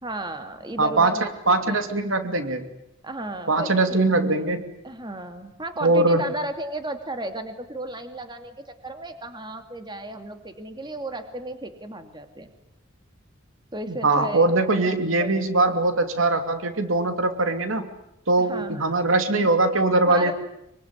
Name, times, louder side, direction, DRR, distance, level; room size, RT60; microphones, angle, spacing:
voice 1, 0.0-1.8 3.0-4.0 4.8-12.5 13.7-15.7 18.4-19.1 20.1-20.3, right 1 dB, 20° right, 7 dB, 2.5 m, -34 dB
voice 2, 0.8-1.2 1.5-2.6 3.5-4.6 5.8-6.2 13.9-17.9 18.3-20.3, right 2 dB, 85° right, 7 dB, 2.8 m, -21 dB
24.5 x 24.0 x 9.9 m, 0.85 s
head